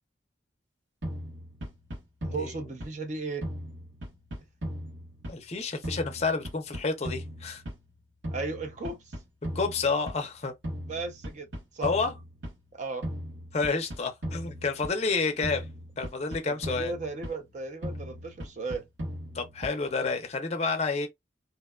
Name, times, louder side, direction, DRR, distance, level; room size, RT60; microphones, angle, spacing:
sound 1, 1.0-3.1 3.4-5.6 5.8-7.9 8.2-10.3 10.6-12.6 13.0-15.1 15.4-17.5 17.8-19.9, equal, 80° right, 1.2 m, -38 dB
voice 1, 2.3-3.4 8.3-9.1 10.9-11.5 11.7-11.9 12.7-13.1 16.4-18.8, right 3 dB, 40° right, 0.5 m, -35 dB
voice 2, 5.3-7.6 9.5-10.5 11.8-12.1 13.5-15.7 16.0-16.9 19.3-21.1, left 4 dB, 35° left, 0.5 m, -29 dB
2.7 x 2.2 x 2.2 m
head